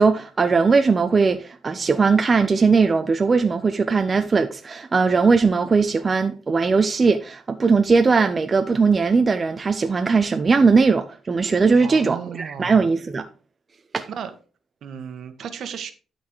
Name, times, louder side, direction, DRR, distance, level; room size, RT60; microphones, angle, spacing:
voice 1, 0.0-13.3 13.9-14.1, right 4 dB, 35° right, 0.6 m, -19 dB
voice 2, 11.8-12.9 14.1-14.3 14.8-15.9, right 7 dB, 65° right, 1.2 m, -34 dB
12.0 x 4.3 x 4.6 m
cardioid pair, 90°, 0 cm